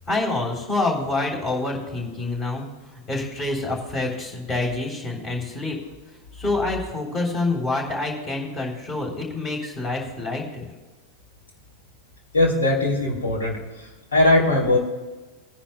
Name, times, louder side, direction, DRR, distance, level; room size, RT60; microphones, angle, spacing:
voice 1, 0.1-5.8 6.3-10.7, left 2 dB, 20° left, 0 dB, 3.6 m, -27 dB
voice 2, 12.3-13.6 14.1-14.8, left 2 dB, 70° left, 0 dB, 3.2 m, -19 dB
21.5 x 10.0 x 2.3 m, 1.2 s
figure-of-eight pair, 90°, 0 cm